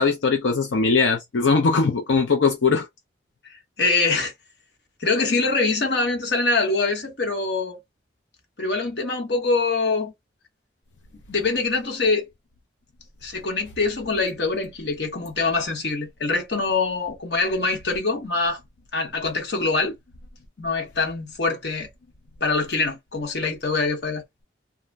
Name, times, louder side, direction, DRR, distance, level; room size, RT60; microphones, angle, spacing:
voice 1, 0.0-2.9, left 4 dB, 90° left, 0.6 m, -20 dB
voice 2, 3.8-4.3 5.0-7.8 8.6-10.1 11.3-12.3 13.2-18.6 18.9-20.0 20.6-21.9 22.4-24.2, left 3 dB, 65° left, 1.0 m, -24 dB
2.5 x 2.1 x 3.2 m
head